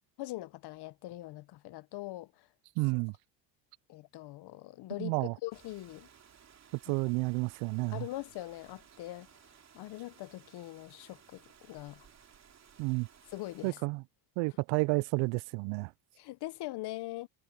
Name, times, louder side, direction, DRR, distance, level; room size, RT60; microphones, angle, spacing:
voice 1, 0.2-2.5 2.9-3.0 3.9-6.1 6.9-7.0 7.9-9.3 9.7-11.4 11.7-12.1 13.3-13.8 16.2-17.3, left 17 dB, 50° left, 0.9 m, -42 dB
voice 2, 2.8-3.1 5.0-5.3 6.9-8.1 12.8-13.1 13.6-14.0 14.4-15.9, right 27 dB, 70° right, 0.5 m, -31 dB
Rain, 5.5-13.7, right 8 dB, 30° right, 3.0 m, -59 dB
cardioid pair, 125°, 50 cm